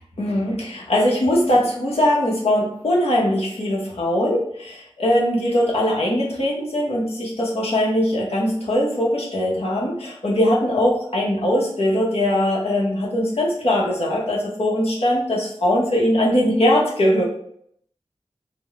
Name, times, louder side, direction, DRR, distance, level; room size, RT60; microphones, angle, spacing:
voice 1, 0.2-17.2, left 1 dB, 70° left, -4 dB, 1.0 m, -21 dB
3.7 x 2.2 x 3.5 m, 0.67 s
wide cardioid pair, 55°, 11 cm